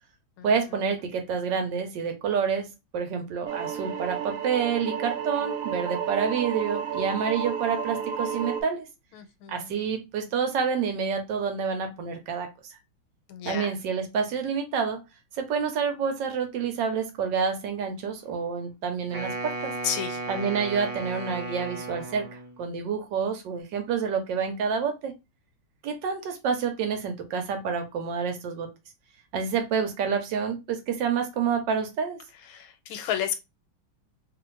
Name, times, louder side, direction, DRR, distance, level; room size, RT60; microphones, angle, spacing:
voice 1, 0.4-8.9 9.5-12.8 13.5-15.0 15.3-19.7 20.3-25.1 25.8-28.7 29.3-32.2, right 6 dB, 70° right, 1.2 m, -28 dB
sound 1, 3.5-8.6, right 7 dB, 90° right, 0.7 m, -32 dB
voice 2, 9.1-9.7 13.3-13.7 19.8-20.2 32.5-33.4, left 9 dB, 85° left, 1.4 m, -31 dB
Wind instrument woodwind instrument, 19.1-22.6, right 2 dB, 40° right, 0.6 m, -35 dB
3.0 x 2.5 x 3.1 m
omnidirectional pair, 2.2 m